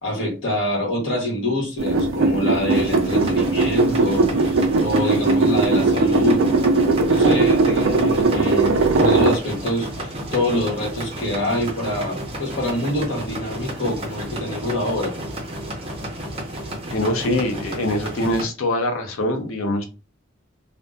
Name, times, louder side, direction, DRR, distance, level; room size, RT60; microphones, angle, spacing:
voice 1, 0.0-6.5 7.1-15.1, left 1 dB, 65° left, 1.0 m, -25 dB
sound 1, 1.8-9.4, right 3 dB, 65° right, 0.4 m, -19 dB
sound 2, 2.7-18.5, right 1 dB, 25° right, 0.6 m, -32 dB
voice 2, 16.9-19.9, left 1 dB, 80° left, 0.6 m, -23 dB
2.6 x 2.1 x 2.2 m
head